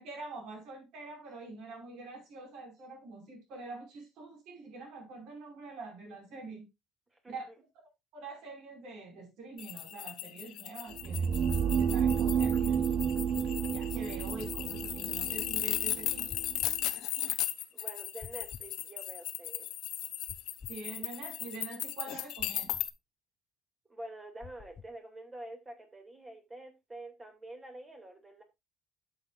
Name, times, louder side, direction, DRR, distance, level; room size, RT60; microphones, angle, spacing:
voice 1, 0.0-6.7 7.3-7.5 8.1-11.3 11.8-13.3 13.7-16.3 20.7-22.7, right 3 dB, 70° right, 5.2 m, -45 dB
sound 1, 9.6-22.9, left 13 dB, 70° left, 0.9 m, -36 dB
sound 2, 10.9-16.8, right 7 dB, 55° right, 0.7 m, -31 dB
sound 3, 14.4-14.9 16.3-16.8 18.2-18.7 20.3-20.8 22.4-22.9 24.4-24.9, left 6 dB, 30° left, 0.7 m, -49 dB
voice 2, 17.7-19.7 23.9-28.4, right 1 dB, 15° right, 2.3 m, -47 dB
12.0 x 7.4 x 2.4 m
cardioid pair, 150°, 0 cm